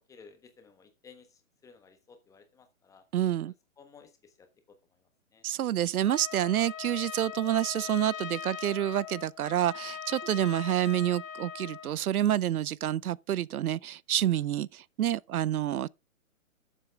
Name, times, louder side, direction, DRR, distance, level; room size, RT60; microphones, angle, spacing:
voice 1, 0.1-3.0 3.8-5.4, left 5 dB, 5° left, 1.1 m, -56 dB
voice 2, 3.1-3.5 5.4-15.9, right 11 dB, 85° right, 0.6 m, -28 dB
Trumpet, 6.0-11.9, left 9 dB, 65° left, 1.2 m, -41 dB
12.0 x 7.4 x 3.4 m
hypercardioid pair, 150°, 43 cm